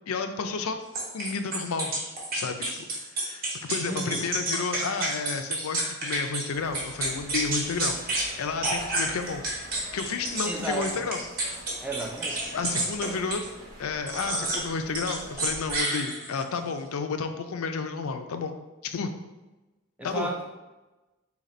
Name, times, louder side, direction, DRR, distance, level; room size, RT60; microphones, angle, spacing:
voice 1, 0.1-0.8 1.1-2.0 2.3-8.0 8.4-9.4 9.9-11.2 12.5-13.4 13.8-18.5 18.8-19.1 20.0-20.3, left 4 dB, 90° left, 7 dB, 0.5 m, -31 dB
sound 1, 1.0-6.5 6.7-8.3 8.6-13.5 14.1-14.7 15.0-16.4, right 1 dB, 45° right, 1.1 m, -29 dB
voice 2, 3.9-4.3 10.4-11.1 11.8-12.5 20.0-20.4, right 2 dB, 5° right, 0 dB, 0.5 m, -34 dB
sound 2, 6.5-15.8, equal, 65° right, 1.2 m, -46 dB
4.0 x 2.9 x 4.2 m, 1.1 s
head